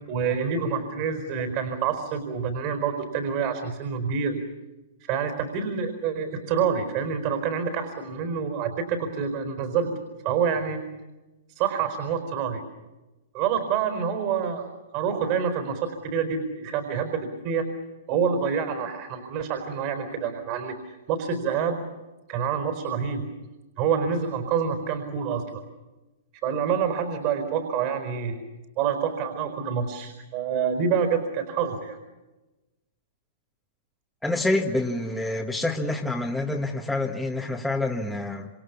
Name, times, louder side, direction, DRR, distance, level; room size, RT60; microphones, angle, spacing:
voice 1, 0.1-4.4 5.0-9.9 10.2-10.8 11.6-12.6 13.3-17.7 18.1-20.7 21.1-21.8 22.3-23.2 23.8-25.6 26.4-28.4 28.8-32.0, right 6 dB, 45° right, 6 dB, 4.5 m, -27 dB
voice 2, 34.2-38.5, left 2 dB, 5° left, -2 dB, 1.7 m, -27 dB
27.5 x 27.0 x 7.2 m, 1.1 s
hypercardioid pair, 130°, 0 cm